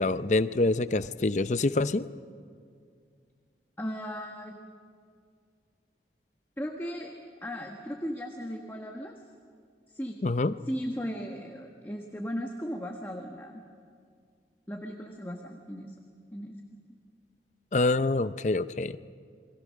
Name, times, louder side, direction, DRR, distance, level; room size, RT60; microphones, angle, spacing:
voice 1, 0.0-2.1 10.2-10.5 17.7-19.0, left 2 dB, 40° left, 14 dB, 0.5 m, -26 dB
voice 2, 3.8-4.6 6.6-7.1 7.4-9.2 9.9-10.2 10.7-13.6 14.7-15.9 16.3-16.6, equal, 15° left, 1 dB, 1.3 m, -36 dB
28.5 x 22.5 x 6.4 m, 2.2 s
head